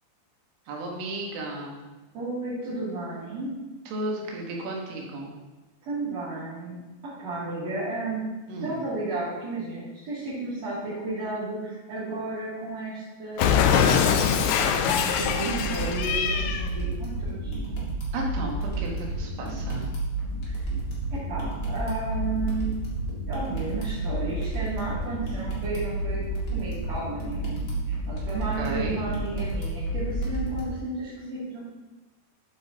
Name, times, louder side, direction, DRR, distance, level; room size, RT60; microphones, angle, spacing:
voice 1, 0.7-1.8 3.9-5.3 8.5-8.8 18.1-19.9 28.6-29.0, right 1 dB, 75° right, -1 dB, 3.8 m, -33 dB
voice 2, 2.1-3.5 5.9-6.8 7.0-8.2 8.5-17.6 20.4-20.7 21.1-22.7 23.3-26.2 26.5-31.6, right 2 dB, 40° right, -13 dB, 3.3 m, -33 dB
Cat, 13.4-16.7, left 7 dB, 90° left, 3.2 m, -23 dB
sound 1, 15.2-30.6, right 2 dB, 45° left, 1.4 m, -31 dB
11.0 x 8.2 x 2.9 m, 1.2 s
omnidirectional pair, 5.7 m